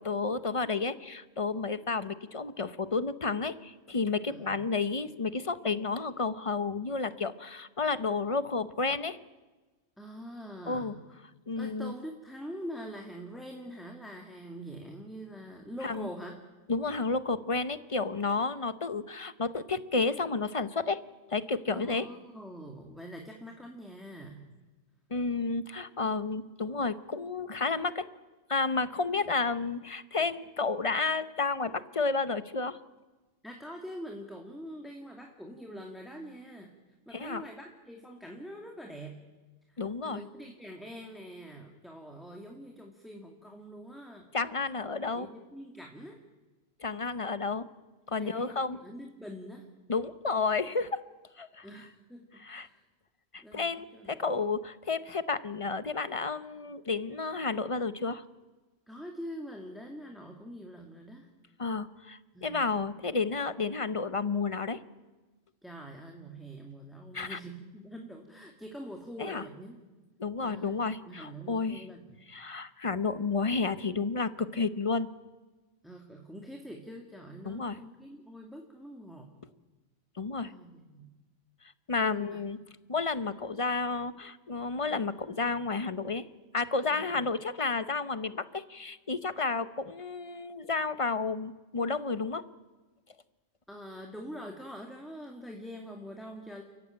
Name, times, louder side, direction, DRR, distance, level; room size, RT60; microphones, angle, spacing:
voice 1, 0.0-9.2 10.7-10.9 11.5-11.9 15.8-16.1 16.7-21.0 21.3-22.1 25.1-28.1 28.5-32.8 37.1-37.4 39.8-40.2 44.3-45.3 46.8-47.7 48.1-48.8 49.9-51.0 51.4-51.7 52.4-52.7 53.3-58.2 61.6-64.8 67.1-67.4 69.2-69.4 70.2-71.8 72.3-75.1 77.4-77.8 80.2-80.5 81.9-82.6 82.9-86.3 86.5-92.4, left 4 dB, 30° left, 14 dB, 0.7 m, -31 dB
voice 2, 4.3-4.6 10.0-10.9 11.6-16.4 21.7-24.5 33.4-36.7 37.1-39.1 39.7-44.3 45.1-46.2 48.2-49.7 51.6-52.8 53.4-54.2 58.9-61.3 62.3-62.8 65.6-69.8 70.4-70.8 71.1-72.2 75.8-79.3 80.4-81.1 82.1-82.4 86.9-87.0 93.7-96.6, equal, ahead, 2 dB, 2.0 m, -44 dB
30.0 x 15.0 x 8.9 m, 1.2 s
omnidirectional pair, 1.4 m